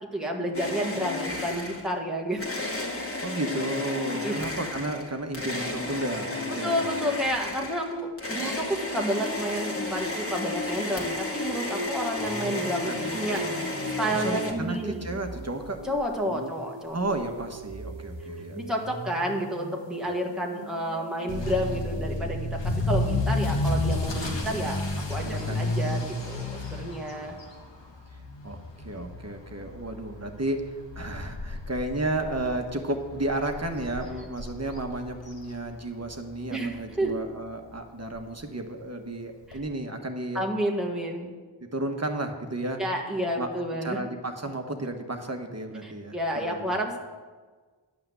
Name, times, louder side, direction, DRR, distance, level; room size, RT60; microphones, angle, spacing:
voice 1, 0.1-2.5 4.2-4.4 6.5-15.1 15.8-17.0 18.5-27.4 36.5-37.2 39.5-39.6 40.3-41.3 42.8-44.0 45.8-47.0, equal, ahead, -1 dB, 1.6 m, -30 dB
sound 1, 0.5-2.0 2.4-14.5, left 2 dB, 30° left, 2.0 m, -32 dB
voice 2, 3.2-6.9 12.9-13.4 14.1-15.8 16.2-16.5 16.9-18.7 25.2-25.7 28.4-28.6 28.8-30.6 30.9-40.4 41.6-42.8 43.4-43.5 43.8-46.7, right 2 dB, 35° right, 4 dB, 1.4 m, -33 dB
sound 2, 12.2-22.2, right 3 dB, 70° right, 1.6 m, -42 dB
Motor vehicle (road) / Accelerating revving vroom, 21.3-36.1 36.4-36.8 37.3-37.4 37.7-37.8 38.1-38.2 39.5-39.6, left 2 dB, 60° left, 1.7 m, -32 dB
11.0 x 5.8 x 7.9 m, 1.4 s
cardioid pair, 45°, 47 cm